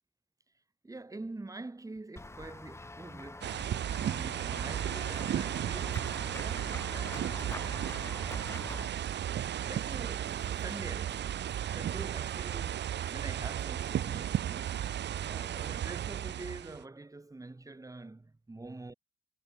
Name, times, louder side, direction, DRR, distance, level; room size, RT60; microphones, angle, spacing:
voice 1, 0.8-3.6 4.0-7.6 8.3-8.9 9.2-9.3 9.6-11.4 11.7-14.7 15.2-18.9, right 2 dB, 15° right, 4.0 m, -46 dB
Run / Walk footsteps / Bell, 2.2-8.9, left 2 dB, 15° left, 1.2 m, -45 dB
sound 1, 3.4-16.8, right 10 dB, 60° right, 1.2 m, -34 dB
cardioid pair, 90°, 20 cm